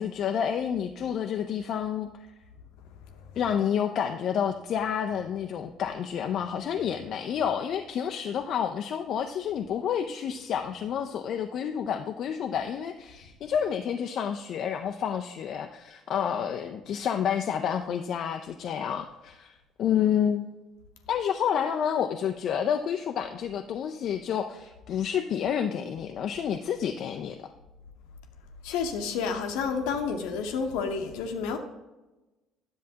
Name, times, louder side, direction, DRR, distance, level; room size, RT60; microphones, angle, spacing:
voice 1, 0.0-2.1 3.4-20.5 21.1-27.5, left 8 dB, 55° left, 0.4 m, -29 dB
voice 2, 28.6-31.6, left 5 dB, 70° left, 0.8 m, -30 dB
10.5 x 7.1 x 2.8 m
hypercardioid pair, 55°, 0 cm